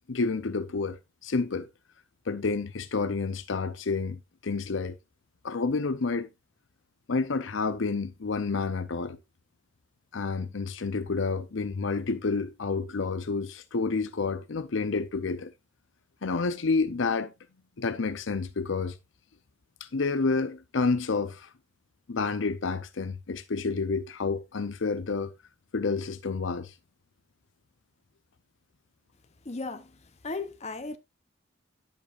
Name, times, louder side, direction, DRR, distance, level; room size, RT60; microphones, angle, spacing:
voice 1, 0.1-1.7 2.3-5.0 5.4-6.3 7.1-9.2 10.1-15.5 16.2-17.3 17.8-18.9 19.9-21.5 22.1-25.3 25.7-26.7, left 4 dB, 70° left, 0.6 m, -29 dB
voice 2, 29.5-29.9 30.2-31.0, left 3 dB, 35° left, 0.7 m, -35 dB
10.5 x 7.4 x 2.5 m
head